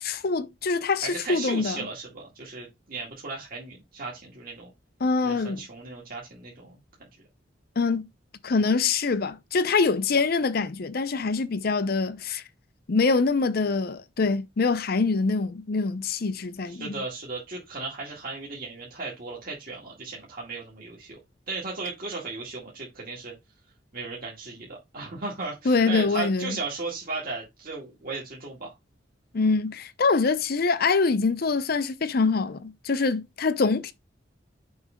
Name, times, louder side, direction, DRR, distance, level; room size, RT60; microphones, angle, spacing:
voice 1, 0.0-1.9 5.0-5.6 7.8-8.1 8.4-12.4 12.9-17.0 25.6-26.6 29.3-33.9, left 4 dB, 55° left, 0.6 m, -24 dB
voice 2, 1.0-4.7 5.2-6.7 7.0-7.1 16.6-21.2 21.5-23.3 23.9-28.7, right 3 dB, 50° right, 1.9 m, -36 dB
6.4 x 3.2 x 5.0 m
head